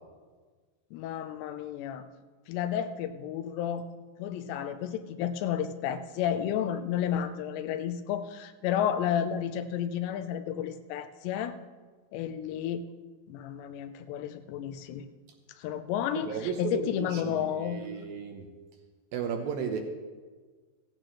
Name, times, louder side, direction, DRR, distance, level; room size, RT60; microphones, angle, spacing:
voice 1, 0.9-2.1 2.5-3.9 4.2-11.6 12.1-12.9 13.3-15.1 15.6-17.8, left 9 dB, 85° left, 10 dB, 2.9 m, -32 dB
voice 2, 16.1-18.5 19.1-19.8, right 6 dB, 75° right, 3 dB, 2.3 m, -34 dB
16.0 x 15.5 x 3.1 m, 1.4 s
omnidirectional pair, 4.9 m